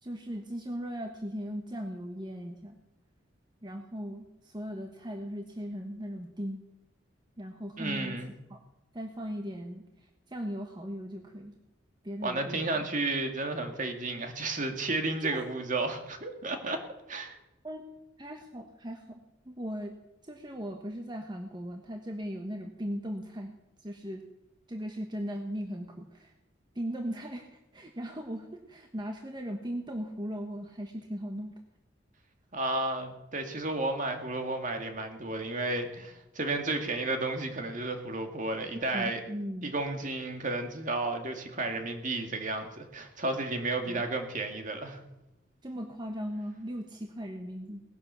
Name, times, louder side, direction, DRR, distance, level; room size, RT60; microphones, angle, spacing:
voice 1, 0.0-2.8 3.6-6.6 7.4-8.2 8.5-8.6 8.9-9.8 10.3-11.6 12.0-12.8 15.2-15.4 17.6-17.8 18.2-20.0 20.2-23.5 23.8-24.2 24.7-26.3 26.7-31.6 38.7-39.7 43.9-44.0 45.6-47.8, equal, 25° right, 3 dB, 1.3 m, -38 dB
voice 2, 7.8-8.3 12.2-16.8 17.1-17.3 32.5-39.2 39.6-45.0, right 2 dB, 45° right, 5 dB, 2.2 m, -32 dB
19.0 x 11.0 x 6.9 m, 0.94 s
head